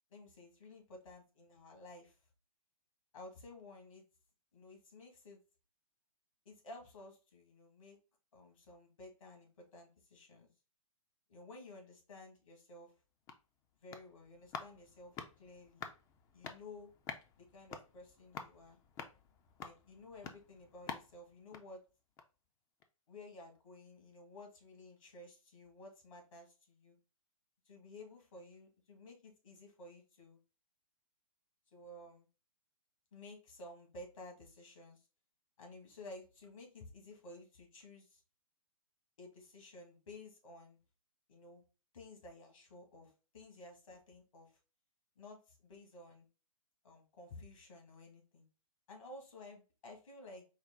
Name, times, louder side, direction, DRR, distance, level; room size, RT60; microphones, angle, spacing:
voice 1, 0.1-2.2 3.1-4.0 4.5-5.4 6.5-8.0 8.3-10.5 11.3-12.9 13.8-15.9 16.3-16.9 17.4-18.8 19.6-21.8 23.1-27.0 27.7-30.4 31.7-32.3 33.1-35.1 35.6-38.2 39.2-40.8 41.3-41.6 41.9-44.6 45.2-46.3 46.8-48.5 48.9-50.4, left 2 dB, 65° left, 2 dB, 1.8 m, -54 dB
sound 1, 12.9-22.5 22.8-22.9, left 6 dB, 20° left, 0.4 m, -50 dB
4.7 x 2.1 x 3.7 m, 0.33 s
hypercardioid pair, 130°, 18 cm